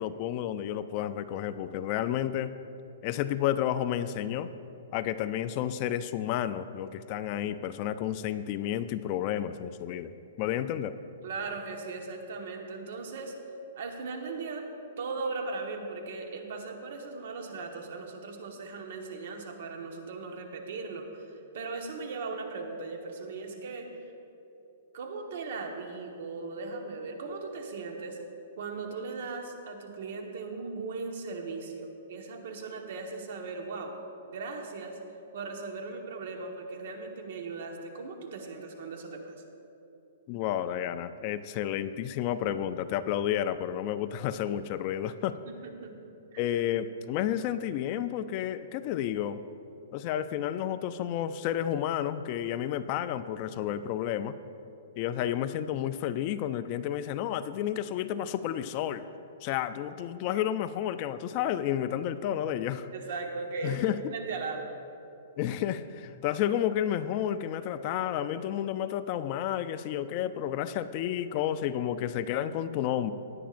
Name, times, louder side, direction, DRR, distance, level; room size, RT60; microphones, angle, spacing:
voice 1, 0.0-2.5 3.0-4.5 4.9-10.9 40.3-45.4 46.4-49.4 49.9-54.3 55.0-59.1 59.4-62.9 63.6-64.0 65.4-73.1, left 11 dB, 35° left, 12 dB, 0.3 m, -31 dB
voice 2, 11.2-13.3 13.8-14.7 15.0-24.1 24.9-28.2 28.6-34.0 34.3-35.0 35.3-39.3 45.4-46.0 46.3-46.4 62.9-63.8 64.1-64.7, right 4 dB, 60° right, 3 dB, 1.3 m, -38 dB
17.0 x 10.0 x 2.5 m, 2.8 s
hypercardioid pair, 160°, 0 cm